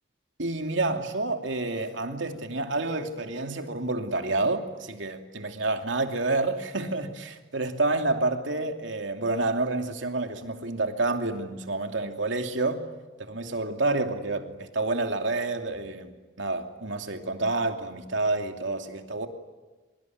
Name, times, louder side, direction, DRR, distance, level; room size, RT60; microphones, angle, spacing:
voice 1, 0.4-12.8 13.2-19.3, right 2 dB, 85° right, 2.7 m, -29 dB
24.5 x 23.0 x 9.5 m
head